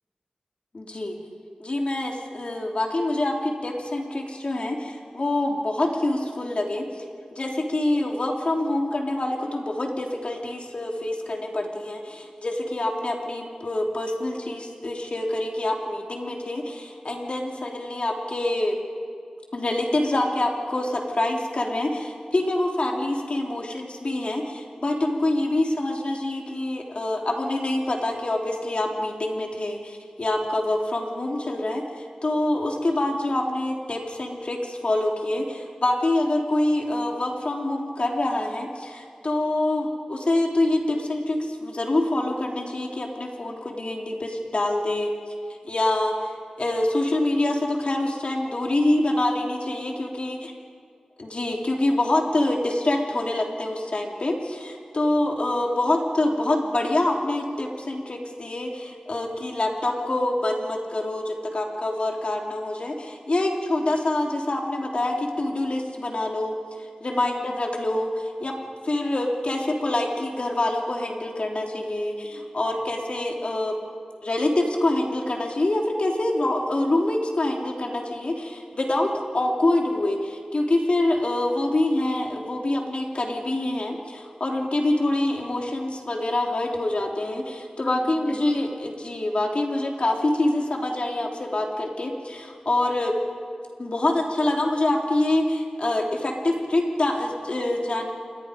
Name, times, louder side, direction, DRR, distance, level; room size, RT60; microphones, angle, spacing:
voice 1, 0.7-1.2 1.6-6.8 7.3-18.8 19.5-45.1 45.6-50.5 51.2-66.5 67.0-68.5 68.8-73.7 74.2-93.1 93.8-98.1, left 1 dB, 60° left, 1 dB, 3.3 m, -26 dB
27.5 x 21.5 x 5.2 m, 2.2 s
wide cardioid pair, 55°, 2 cm